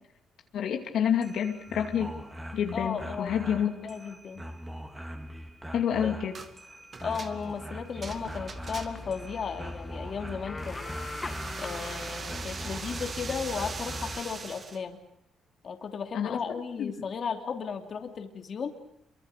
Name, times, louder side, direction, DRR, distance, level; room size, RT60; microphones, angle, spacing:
voice 1, 0.5-2.1 2.5-3.7 5.7-6.3 16.1-16.4 16.8-16.9, left 8 dB, 70° left, 3 dB, 2.5 m, -28 dB
sound 1, 1.0-14.3, equal, 10° right, 3.7 m, -42 dB
voice 2, 2.7-3.4 3.7-4.4 6.0-6.2 7.0-11.0 11.6-15.0 15.6-18.7, left 6 dB, 50° left, 5 dB, 2.7 m, -35 dB
sound 2, 6.3-6.5 6.9-9.2 10.6-14.8, right 4 dB, 40° right, 2.3 m, -41 dB
sound 3, 8.0-14.2, left 3 dB, 25° left, 1.8 m, -42 dB
27.5 x 23.5 x 6.8 m, 0.75 s
cardioid pair, 90°, 0 cm